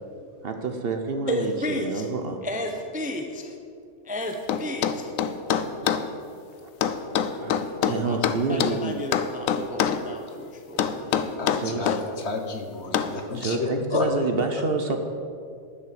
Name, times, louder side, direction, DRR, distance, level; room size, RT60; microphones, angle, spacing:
voice 1, 0.4-2.4 5.8-6.0 7.3-9.0 11.6-11.9 13.3-15.0, right 3 dB, 50° right, 5 dB, 0.9 m, -28 dB
voice 2, 1.3-2.1 2.4-3.6 4.0-5.1 8.0-11.6, left 1 dB, 10° right, 3 dB, 0.6 m, -33 dB
sound 1, 4.5-6.1 6.8-8.8 9.1-10.1 10.8-12.0 12.9-13.2, left 8 dB, 80° left, 1.0 m, -24 dB
voice 3, 11.4-14.1, left 4 dB, 55° left, 5 dB, 1.3 m, -30 dB
10.5 x 6.4 x 7.7 m, 2.4 s
omnidirectional pair, 1.4 m